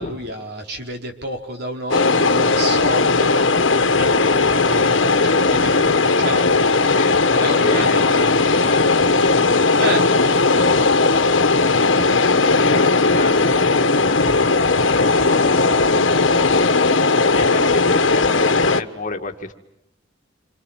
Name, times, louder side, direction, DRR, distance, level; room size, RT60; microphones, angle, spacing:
voice 1, 0.0-6.7 7.3-8.8 9.8-10.0, right 1 dB, 60° right, 3 dB, 4.7 m, -30 dB
sound 1, 1.9-18.8, left 3 dB, 75° left, 1.5 m, -17 dB
voice 2, 6.9-11.5 12.0-16.7 17.3-19.5, left 2 dB, 45° left, 5 dB, 2.3 m, -32 dB
28.0 x 27.5 x 7.5 m, 0.84 s
head